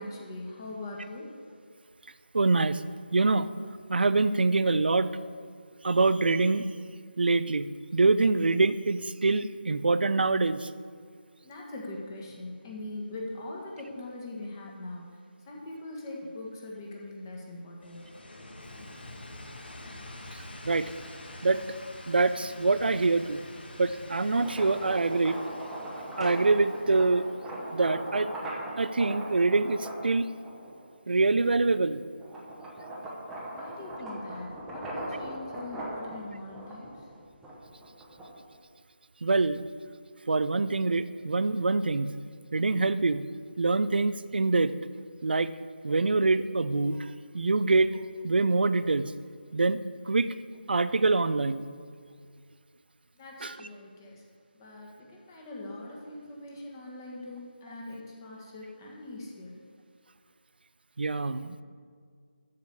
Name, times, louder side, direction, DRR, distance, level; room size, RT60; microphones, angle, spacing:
voice 1, 0.0-1.4 11.4-15.1 15.4-18.1 33.5-37.0 53.1-54.2 54.5-59.6, left 2 dB, 20° left, -2 dB, 1.7 m, -41 dB
voice 2, 2.3-2.8 3.1-3.5 3.9-5.1 5.8-6.7 7.2-10.7 20.6-20.9 21.4-21.6 22.1-23.4 23.8-25.4 26.2-27.2 27.7-28.3 28.8-30.3 31.1-32.0 39.2-39.6 40.3-42.1 42.5-43.2 43.6-44.7 45.2-45.5 45.8-47.0 47.3-48.0 48.2-49.0 49.5-49.8 50.1-50.3 50.7-51.7 53.4-53.5 61.0-61.6, right 3 dB, 65° right, 14 dB, 0.6 m, -25 dB
sound 1, 17.8-28.5, left 1 dB, 65° left, 1.7 m, -47 dB
sound 2, 24.3-30.8 31.4-38.6, right 1 dB, 5° right, 1.0 m, -39 dB
13.5 x 5.1 x 8.4 m, 2.1 s
figure-of-eight pair, 165°, 6 cm